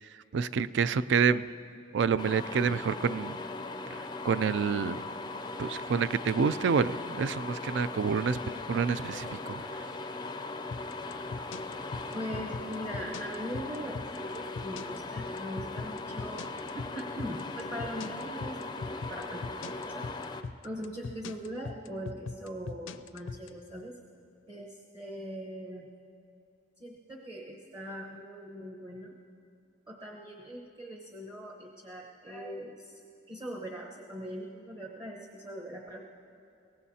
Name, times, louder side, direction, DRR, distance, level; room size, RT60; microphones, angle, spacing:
voice 1, 0.3-1.5 1.9-3.3 3.9-5.0 5.6-8.4 8.7-9.6, right 6 dB, 65° right, 15 dB, 0.4 m, -28 dB
sound 1, 2.2-20.4, left 3 dB, 20° left, 0.4 m, -39 dB
sound 2, 10.7-23.5, left 4 dB, 80° left, 0.5 m, -39 dB
voice 2, 12.1-20.1 20.6-24.0 24.5-25.9 26.8-29.2 29.9-33.0 33.3-36.2, equal, 25° right, -2 dB, 1.0 m, -41 dB
23.0 x 17.5 x 2.8 m, 2.6 s
head